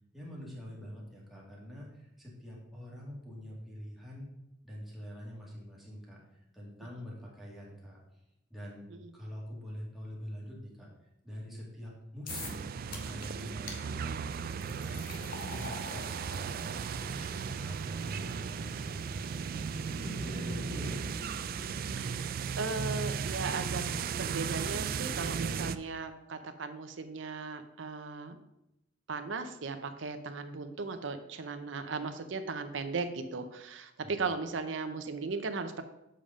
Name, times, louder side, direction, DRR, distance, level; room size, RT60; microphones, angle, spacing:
voice 1, 0.1-4.3 4.6-8.0 8.5-8.9 9.1-10.9 11.2-14.2 14.6-16.0 16.3-19.5 19.9-21.1 34.0-34.3, equal, ahead, -5 dB, 2.2 m, -45 dB
sound 1, 12.3-12.6 12.9-13.3 13.7-13.8 14.5-21.6, left 3 dB, 50° left, 1.2 m, -48 dB
sound 2, 12.3-25.8, right 6 dB, 50° right, 0.3 m, -36 dB
voice 2, 22.0-23.8 24.2-28.4 29.1-35.8, right 4 dB, 70° right, 8 dB, 0.7 m, -37 dB
7.5 x 5.1 x 5.0 m, 0.85 s
head